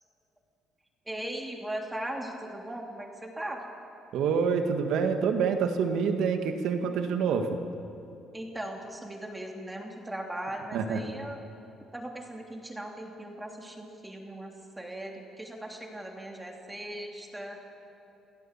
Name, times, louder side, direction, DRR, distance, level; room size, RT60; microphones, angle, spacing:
voice 1, 1.1-3.6 8.3-11.4 11.9-17.6, right 1 dB, 10° right, 1 dB, 3.0 m, -38 dB
voice 2, 4.1-7.6 10.7-11.0, right 6 dB, 75° right, 6 dB, 1.9 m, -27 dB
24.5 x 16.0 x 7.5 m, 2.9 s
cardioid pair, 105°, 0 cm